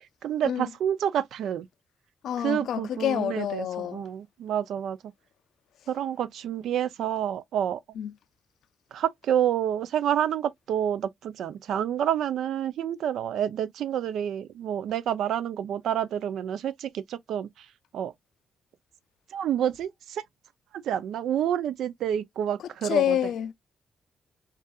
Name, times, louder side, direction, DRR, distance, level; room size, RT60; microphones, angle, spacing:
voice 1, 0.0-1.7 2.4-5.0 5.9-7.8 8.9-17.7 17.9-18.1 19.3-20.2 20.8-23.2, right 10 dB, 85° right, 0.4 m, -28 dB
voice 2, 2.2-4.1 8.0-8.1 22.8-23.5, left 10 dB, 80° left, 0.3 m, -27 dB
5.5 x 2.4 x 2.3 m
cardioid pair, 115°, 0 cm